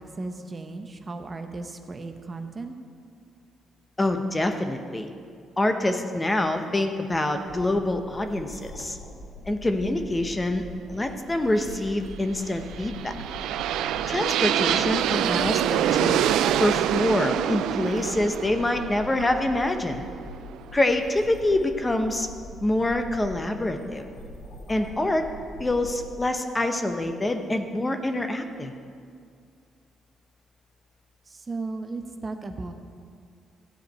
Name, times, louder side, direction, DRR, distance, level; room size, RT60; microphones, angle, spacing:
voice 1, 0.0-2.7 31.3-32.7, right 3 dB, 30° right, 6 dB, 0.8 m, -35 dB
voice 2, 4.0-5.1 5.6-9.0 9.5-10.6 10.9-13.1 14.1-16.2 16.6-20.0 20.7-22.3 22.6-24.1 24.7-25.3 25.6-28.7, left 1 dB, 20° left, 6 dB, 0.9 m, -26 dB
sound 1, 7.5-26.1, left 1 dB, 80° left, 2.2 m, -43 dB
sound 2, 12.6-20.5, right 11 dB, 85° right, 0.3 m, -26 dB
13.5 x 4.9 x 8.1 m, 2.3 s
cardioid pair, 90°, 0 cm